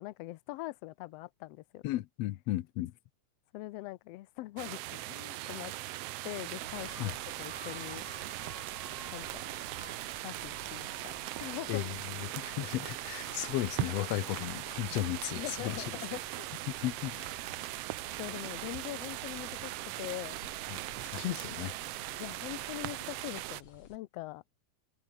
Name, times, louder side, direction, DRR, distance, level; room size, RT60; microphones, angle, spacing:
voice 1, 0.0-1.8 3.5-5.7 6.2-8.0 9.1-9.4 10.2-11.8 14.0-14.1 15.3-16.5 17.6-17.8 18.2-19.7 20.0-20.7 22.2-24.4, left 18 dB, 85° left, 1.4 m, -42 dB
voice 2, 1.8-2.9 7.0-7.1 11.7-12.0 12.2-15.8 16.8-17.3 20.7-20.8 21.1-21.7, left 15 dB, 70° left, 1.6 m, -34 dB
sound 1, 4.6-23.6, right 16 dB, 90° right, 1.4 m, -40 dB
sound 2, 6.6-24.0, left 5 dB, 50° left, 4.7 m, -54 dB
omnidirectional pair, 3.6 m